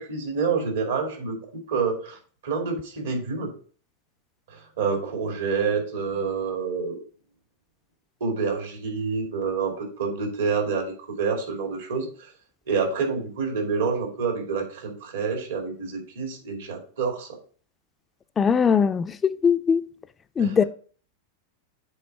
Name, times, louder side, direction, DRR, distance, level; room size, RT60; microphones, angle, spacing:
voice 1, 0.0-1.4 1.7-2.2 2.4-3.5 4.5-7.0 8.2-12.3 12.7-17.4 20.4-20.7, right 5 dB, 80° right, 2.3 m, -28 dB
voice 2, 18.4-19.8 20.4-20.6, left 6 dB, 20° left, 0.4 m, -20 dB
7.8 x 3.5 x 4.6 m
hypercardioid pair, 115°, 0 cm